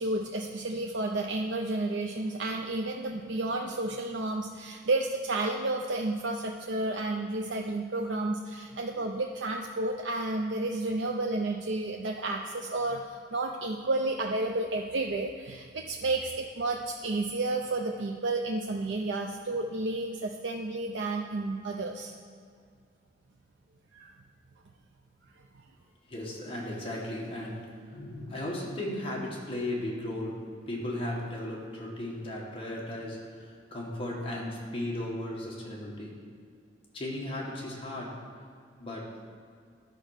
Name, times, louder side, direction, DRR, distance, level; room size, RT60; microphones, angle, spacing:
voice 1, 0.0-22.2 23.9-24.1, right 2 dB, 90° right, 2 dB, 0.5 m, -31 dB
voice 2, 26.1-36.2 36.9-38.2 38.8-39.2, left 1 dB, 30° left, -3 dB, 1.7 m, -36 dB
10.5 x 5.3 x 6.5 m, 2.2 s
head